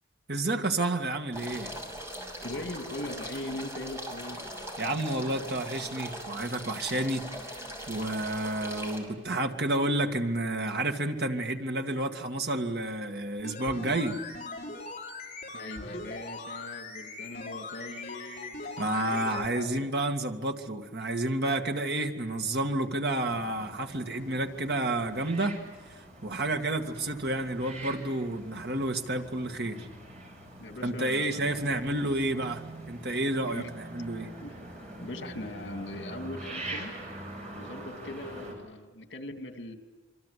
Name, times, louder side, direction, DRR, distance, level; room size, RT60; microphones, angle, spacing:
voice 1, 0.3-1.7 4.8-7.2 7.9-14.2 18.8-25.6 25.9-29.9 30.8-34.3, right 1 dB, 60° right, 4 dB, 2.2 m, -30 dB
sound 1, 1.3-9.0, equal, 15° right, 6.1 m, -40 dB
voice 2, 2.4-4.4 15.5-19.9 30.6-31.7 33.5-33.7 34.4-34.6 35.0-36.9 37.5-39.8, left 1 dB, 75° left, 6 dB, 2.7 m, -40 dB
sound 2, 13.4-19.5 19.8-19.9, left 3 dB, 40° left, 5.2 m, -41 dB
sound 3, 23.2-38.5, right 1 dB, 40° right, 6.6 m, -44 dB
26.5 x 24.5 x 8.4 m, 1.4 s
head